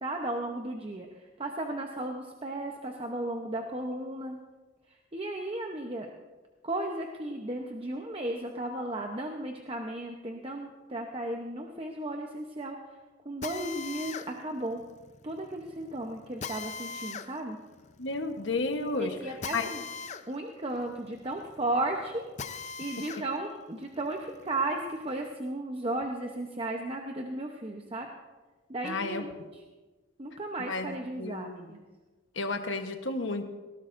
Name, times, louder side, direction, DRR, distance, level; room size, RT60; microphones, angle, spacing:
voice 1, 0.0-4.4 4.9-6.1 6.6-13.0 13.2-14.8 15.2-17.6 19.0-19.8 20.3-22.3 22.5-28.1 28.7-29.6 30.2-31.8, right 1 dB, 30° right, 2 dB, 0.9 m, -35 dB
Drill, 13.4-23.3 23.7-25.3, left 5 dB, 40° left, 0.6 m, -42 dB
voice 2, 18.0-19.1 19.5-19.7 28.8-29.2 30.6-31.7 32.3-33.4, left 3 dB, 75° left, 6 dB, 1.2 m, -32 dB
19.5 x 16.5 x 2.6 m, 1.2 s
head